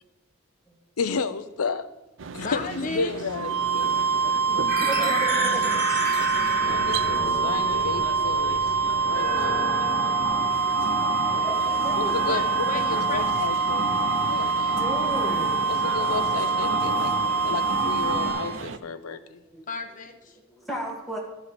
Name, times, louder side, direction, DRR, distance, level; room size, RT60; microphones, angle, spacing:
voice 1, 1.0-1.9 2.3-4.0 6.4-8.7 9.0-9.8 12.0-12.4 12.9-13.9 14.3-14.8 15.7-17.1 17.4-19.2, left 4 dB, 90° left, 12 dB, 0.6 m, -32 dB
sound 1, 2.2-18.8, right 5 dB, 60° right, 0.5 m, -37 dB
voice 2, 2.4-3.1 4.9-6.3 12.2-13.6 19.7-20.4, left 3 dB, 35° left, 6 dB, 0.9 m, -35 dB
sound 2, 3.3-18.6, right 4 dB, 85° right, 1.2 m, -25 dB
voice 3, 4.2-5.8 11.3-12.1 14.2-15.7 18.9-19.6 20.5-21.2, right 1 dB, ahead, -3 dB, 1.8 m, -36 dB
sound 3, 4.7-18.3, right 1 dB, 40° right, 3.6 m, -31 dB
12.0 x 4.5 x 6.6 m, 1.0 s
head